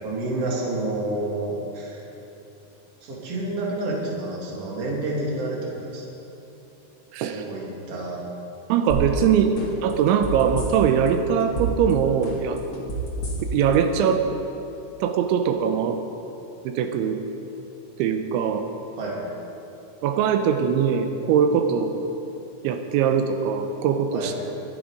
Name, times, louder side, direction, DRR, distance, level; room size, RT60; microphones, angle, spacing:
voice 1, 0.0-2.1 3.0-6.0 7.2-8.2 9.1-9.3 19.0-19.2 24.1-24.3, right 2 dB, 35° right, -4 dB, 2.9 m, -29 dB
voice 2, 7.1-7.4 8.7-9.5 9.8-12.6 13.5-14.2 15.0-16.0 16.6-17.2 18.0-18.7 20.0-21.9 22.6-24.3, right 7 dB, 80° right, 6 dB, 2.9 m, -21 dB
sound 1, 8.9-9.2 9.6-11.1 11.4-11.9 12.2-13.7 14.1-14.2, right 3 dB, 70° left, 1.1 m, -28 dB
23.0 x 9.1 x 5.1 m, 2.9 s
omnidirectional pair, 5.8 m